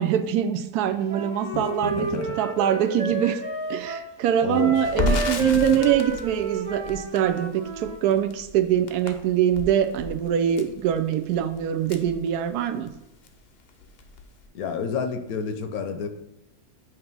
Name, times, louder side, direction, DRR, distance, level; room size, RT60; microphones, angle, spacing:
voice 1, 0.0-3.4 3.7-12.9, right 10 dB, 85° right, 8 dB, 1.1 m, -24 dB
Wind instrument woodwind instrument, 1.1-4.1 4.5-8.0, right 2 dB, 40° right, 0.7 m, -31 dB
voice 2, 1.5-2.4 4.4-5.2 5.5-5.8 14.5-16.1, left 6 dB, 75° left, 7 dB, 1.1 m, -30 dB
Crackle, 4.8-12.9 13.2-13.4 13.7-14.4, left 2 dB, 55° left, 0.7 m, -33 dB
8.1 x 2.9 x 5.3 m, 0.89 s
omnidirectional pair, 1.6 m